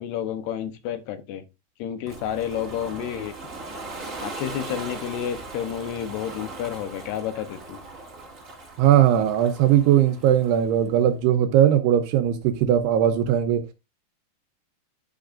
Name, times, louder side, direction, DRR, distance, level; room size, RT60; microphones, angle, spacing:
voice 1, 0.0-1.4 1.8-3.3 4.2-7.8, left 10 dB, 75° left, 2.8 m, -30 dB
Ocean, 2.1-10.9, right 3 dB, 30° right, 1.5 m, -39 dB
voice 2, 8.8-13.6, right 10 dB, 75° right, 2.7 m, -19 dB
11.5 x 6.3 x 2.5 m
omnidirectional pair, 5.0 m